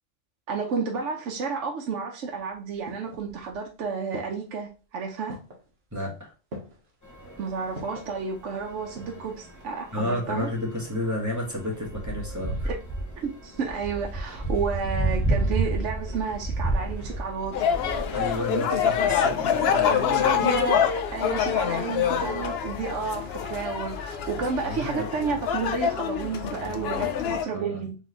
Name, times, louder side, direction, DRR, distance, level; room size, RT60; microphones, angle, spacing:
voice 1, 0.5-5.4 7.4-10.5 12.7-12.8 13.2-17.7 20.2-20.9 21.1-28.0, right 5 dB, 75° right, 1 dB, 1.0 m, -31 dB
sound 1, 2.3-3.7 4.1-4.7 5.3-5.7 6.5-6.9 7.8-8.2 8.7-9.3 9.6-9.7, equal, 55° right, 1.3 m, -42 dB
voice 2, 5.9-6.3 9.9-12.7 18.1-20.5 24.4-25.0 26.5-27.8, left 1 dB, 15° right, -2 dB, 1.4 m, -32 dB
sound 2, 7.0-20.8, right 2 dB, 15° left, 0.8 m, -32 dB
sound 3, 17.5-27.4, left 8 dB, 60° left, 0.7 m, -26 dB
3.9 x 3.1 x 3.9 m, 0.34 s
omnidirectional pair, 1.3 m